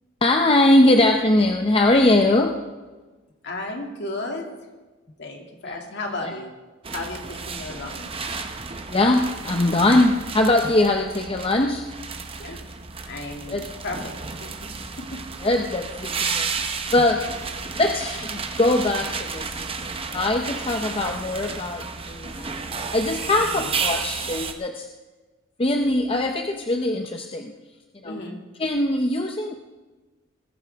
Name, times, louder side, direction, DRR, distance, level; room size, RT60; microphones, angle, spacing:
voice 1, 0.2-2.6 5.7-5.8 6.2-6.3 8.9-11.9 13.5-13.6 15.4-16.5 16.9-17.2 17.7-22.6 22.9-24.9 25.6-27.5 28.0-28.2 28.6-29.5, left 2 dB, 25° left, 3 dB, 0.7 m, -21 dB
voice 2, 3.4-4.5 5.2-6.5 6.9-8.5 12.4-12.6 13.1-14.1 14.4-14.7 23.3-23.7 28.0-28.4, left 2 dB, 55° left, 1 dB, 2.4 m, -34 dB
sound 1, 6.8-24.5, right 5 dB, 25° right, 0.9 m, -32 dB
20.0 x 14.5 x 3.6 m, 1.2 s
head